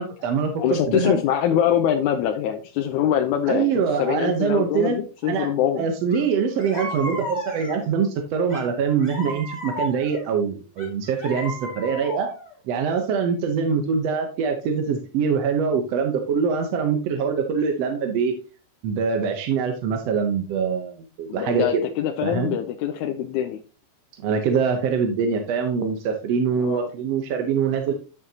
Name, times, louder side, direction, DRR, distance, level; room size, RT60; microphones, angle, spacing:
voice 1, 0.0-1.2 3.5-5.0 5.2-5.5 5.8-12.3 12.7-18.4 18.8-21.7 22.2-22.6 24.2-27.9, right 6 dB, 65° right, 4 dB, 1.8 m, -24 dB
voice 2, 0.6-3.7 4.0-5.9 21.3-23.6 26.6-26.9, left 10 dB, 80° left, 4 dB, 2.0 m, -23 dB
sound 1, 6.1-6.2 6.6-7.9 8.5-10.3 10.8-12.5, left 1 dB, 15° left, 1.7 m, -34 dB
10.5 x 6.6 x 2.8 m, 0.34 s
omnidirectional pair, 3.5 m